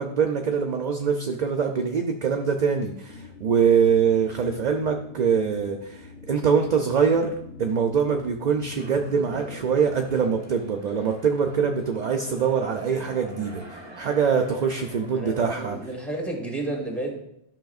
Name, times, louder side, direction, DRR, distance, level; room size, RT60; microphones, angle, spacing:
voice 1, 0.0-15.8, right 6 dB, 50° right, 4 dB, 0.6 m, -24 dB
sound 1, 3.1-10.3, left 4 dB, 75° left, 1.2 m, -45 dB
sound 2, 8.8-15.8, right 1 dB, 25° right, 1.2 m, -44 dB
voice 2, 15.1-17.2, right 2 dB, ahead, -1 dB, 2.2 m, -31 dB
12.0 x 5.8 x 2.4 m, 0.79 s
omnidirectional pair, 1.2 m